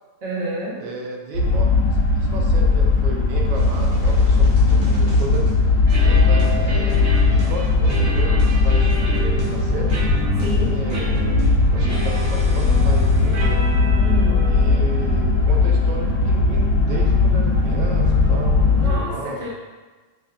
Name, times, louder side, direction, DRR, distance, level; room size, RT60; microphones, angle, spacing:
voice 1, 0.2-0.8 10.4-10.7 14.0-14.5 18.8-19.1 19.4-19.5, right 2 dB, 35° right, -7 dB, 0.9 m, -28 dB
voice 2, 0.8-1.7 2.3-5.7 6.0-9.9 10.4-13.7 14.4-19.5, right 3 dB, 90° right, 1 dB, 1.3 m, -34 dB
sound 1, 1.3-19.0, left 3 dB, 65° left, 1.2 m, -18 dB
sound 2, 3.5-17.0, left 1 dB, 65° right, 1.4 m, -29 dB
5.2 x 2.2 x 2.4 m, 1.3 s
omnidirectional pair, 1.9 m